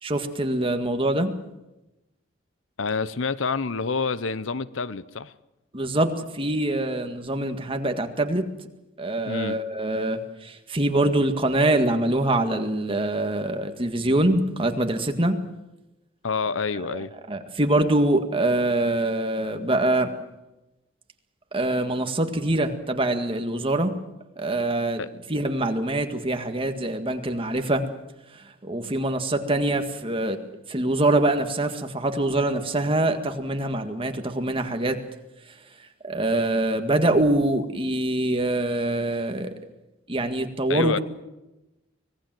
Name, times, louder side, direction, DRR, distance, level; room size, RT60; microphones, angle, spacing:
voice 1, 0.0-1.3 5.7-8.4 9.0-15.4 16.9-17.0 17.3-20.1 21.5-23.9 24.4-25.0 25.3-27.9 28.6-30.4 30.7-35.0 36.0-39.5 40.1-41.0, right 1 dB, 30° right, 1.9 m, -24 dB
voice 2, 2.8-5.3 9.3-9.6 16.2-17.1 25.0-25.1 40.7-41.0, left 4 dB, 80° left, 0.8 m, -27 dB
25.0 x 18.5 x 7.7 m
head